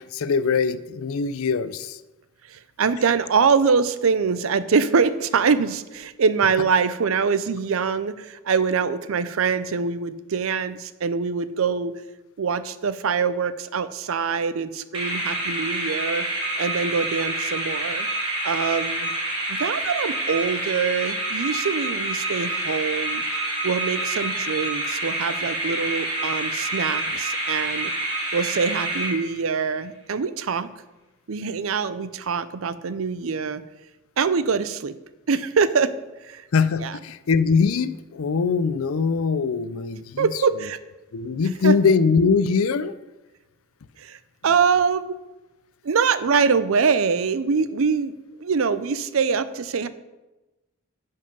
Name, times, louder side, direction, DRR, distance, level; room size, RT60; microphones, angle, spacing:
voice 1, 0.0-2.0 36.5-40.3 41.1-42.9, left 5 dB, 80° left, 13 dB, 0.5 m, -22 dB
voice 2, 2.5-11.9 12.4-16.3 16.6-18.1 18.4-19.1 19.5-23.2 23.6-27.9 28.3-30.7 31.3-33.6 34.2-35.0 35.3-35.9 36.2-36.4 36.8-37.0 40.2-40.8 41.6-41.8 44.0-45.2 45.8-48.1 48.4-49.9, right 5 dB, 75° right, 14 dB, 0.5 m, -24 dB
sound 1, 14.9-29.6, right 1 dB, 25° right, 2.0 m, -27 dB
10.5 x 5.4 x 5.4 m, 1.1 s
head